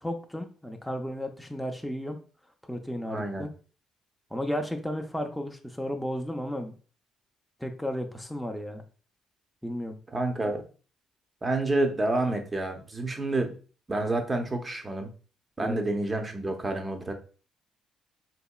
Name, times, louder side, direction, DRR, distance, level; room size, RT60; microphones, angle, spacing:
voice 1, 0.0-2.2 2.7-3.5 4.3-6.7 7.6-8.8 9.6-10.0 15.6-15.8, equal, 5° left, 3 dB, 0.6 m, -33 dB
voice 2, 3.1-3.5 10.1-10.6 11.4-13.5 13.9-15.1 15.6-17.1, right 2 dB, 30° right, 5 dB, 0.8 m, -28 dB
4.1 x 2.8 x 2.3 m, 0.38 s
hypercardioid pair, 55°, 0 cm